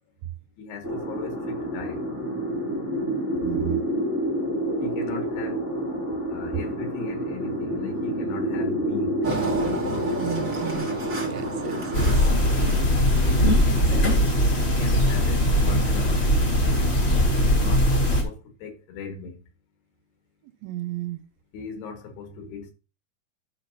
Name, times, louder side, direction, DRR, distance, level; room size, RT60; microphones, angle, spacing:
voice 1, 0.6-2.0 4.8-5.6 6.3-9.3 12.2-16.4 17.1-19.4 21.5-22.7, left 5 dB, 85° left, 3.7 m, -38 dB
sound 1, 0.8-12.1, right 1 dB, 20° right, 0.4 m, -28 dB
voice 2, 3.4-3.9 10.2-10.9 11.3-12.2 20.4-21.2, right 14 dB, 80° right, 2.3 m, -33 dB
Engine, 9.2-13.7, right 2 dB, 55° right, 0.9 m, -33 dB
sound 2, 11.9-18.2, equal, 40° left, 0.8 m, -20 dB
11.0 x 5.9 x 2.7 m
omnidirectional pair, 4.5 m